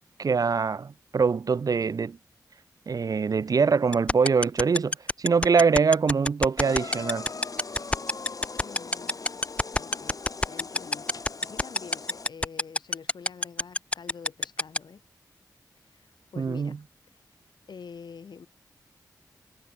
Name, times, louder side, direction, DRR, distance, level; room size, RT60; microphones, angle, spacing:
voice 1, 0.2-2.2 2.9-7.3 16.4-16.8, right 5 dB, 55° right, 0.5 m, -24 dB
sound 1, 3.9-14.8, left 1 dB, 15° left, 0.7 m, -24 dB
sound 2, 6.6-12.3, left 4 dB, 55° left, 1.9 m, -40 dB
voice 2, 8.6-9.4 9.8-10.2 10.5-15.0 15.8-16.8 17.1-17.2 17.7-18.5, left 6 dB, 80° left, 5.8 m, -46 dB
cardioid pair, 45°, 7 cm